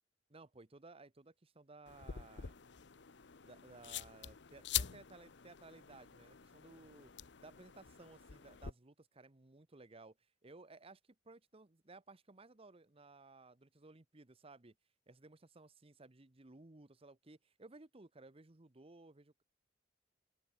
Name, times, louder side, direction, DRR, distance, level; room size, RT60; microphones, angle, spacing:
voice 1, 0.3-2.6 3.4-7.1 7.4-10.2 10.4-11.0 11.2-14.7 15.1-19.4, right 3 dB, 30° right, 1.0 m, -58 dB
sound 1, 1.9-8.7, left 10 dB, 65° left, 0.9 m, -45 dB
head